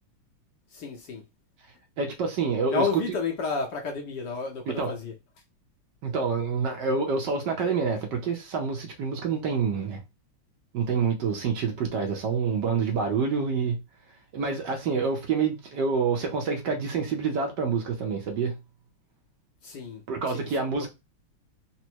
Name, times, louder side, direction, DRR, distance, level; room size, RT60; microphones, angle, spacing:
voice 1, 0.7-1.2 2.7-5.1 19.6-20.0 20.3-20.5, left 4 dB, 65° left, 1.2 m, -31 dB
voice 2, 2.0-2.9 4.7-4.9 6.0-10.0 10.7-13.8 14.3-18.6 20.1-20.9, right 5 dB, 65° right, 1.2 m, -27 dB
4.1 x 2.1 x 4.5 m
omnidirectional pair, 2.3 m